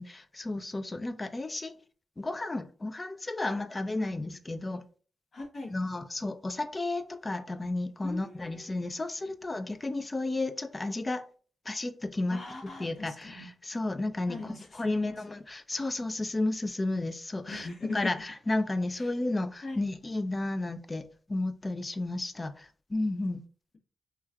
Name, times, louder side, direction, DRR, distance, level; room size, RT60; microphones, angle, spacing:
voice 1, 0.0-1.8 2.2-4.8 5.7-11.3 11.7-12.4 12.8-17.7 17.9-23.4, left 2 dB, 30° left, 0.4 m, -32 dB
voice 2, 5.3-5.7 8.0-8.8 12.3-13.5 14.3-15.2 17.5-18.1 18.9-19.1 19.6-19.9, left 3 dB, 55° left, 1.0 m, -40 dB
3.1 x 2.3 x 2.3 m
cardioid pair, 60°, 0 cm